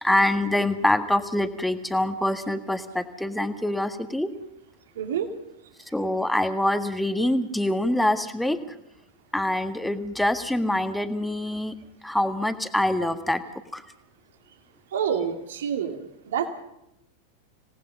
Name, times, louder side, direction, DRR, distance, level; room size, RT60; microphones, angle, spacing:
voice 1, 0.0-4.3 5.9-8.6 9.3-11.7 12.0-13.4 13.7-13.8, left 1 dB, 5° left, 9 dB, 1.7 m, -25 dB
voice 2, 5.0-5.3 14.9-16.5, right 8 dB, 60° right, 7 dB, 2.5 m, -28 dB
26.5 x 18.5 x 5.3 m, 0.81 s
figure-of-eight pair, 90°, 0 cm